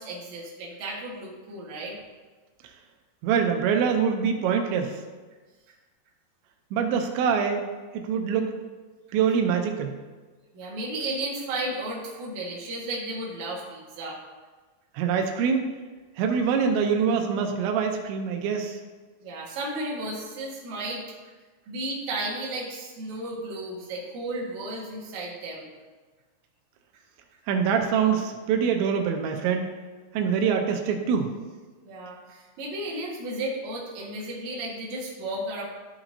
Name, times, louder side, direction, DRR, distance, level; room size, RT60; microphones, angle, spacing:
voice 1, 0.0-1.9 10.5-14.2 19.2-21.0 21.7-25.7 31.8-35.6, right 1 dB, 55° right, -4 dB, 2.4 m, -34 dB
voice 2, 3.2-5.0 6.7-8.5 9.1-10.0 14.9-15.7 16.2-18.8 27.5-29.7 30.1-31.3, right 6 dB, 90° right, 4 dB, 3.0 m, -24 dB
13.0 x 5.9 x 2.7 m, 1.3 s
omnidirectional pair, 5.1 m